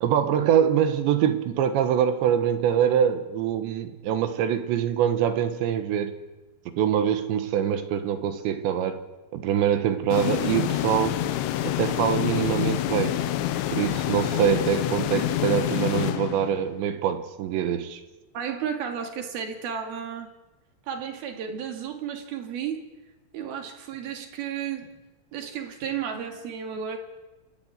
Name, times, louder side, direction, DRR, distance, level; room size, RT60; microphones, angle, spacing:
voice 1, 0.0-6.2 6.7-9.0 9.3-11.2 11.6-13.2 13.7-18.0, right 9 dB, 70° right, 9 dB, 3.4 m, -24 dB
sound 1, 10.1-16.9, left 13 dB, 75° left, 3.0 m, -27 dB
voice 2, 18.3-20.3 20.9-22.9 23.3-24.9 25.3-27.0, right 8 dB, 55° right, 5 dB, 3.7 m, -33 dB
28.0 x 13.0 x 9.7 m, 1.1 s
omnidirectional pair, 5.7 m